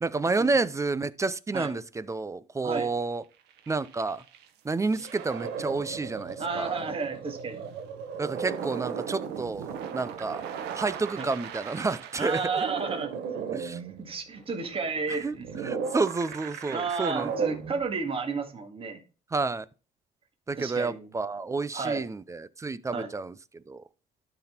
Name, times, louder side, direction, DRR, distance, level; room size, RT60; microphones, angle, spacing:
voice 1, 0.0-3.2 3.7-4.2 4.6-6.7 8.2-10.5 10.7-12.7 13.5-13.8 15.2-15.4 15.6-17.3 19.3-19.6 20.5-23.8, right 3 dB, 20° right, 0.5 m, -30 dB
sound 1, 3.5-4.4 4.9-18.2, right 6 dB, 80° right, 1.2 m, -36 dB
voice 2, 6.4-7.6 11.2-11.3 12.2-13.1 13.5-13.6 14.0-15.5 16.7-19.0 20.6-21.1 21.7-22.0 22.9-23.1, right 4 dB, 35° right, 1.8 m, -32 dB
12.0 x 4.1 x 4.4 m
cardioid pair, 110°, 17 cm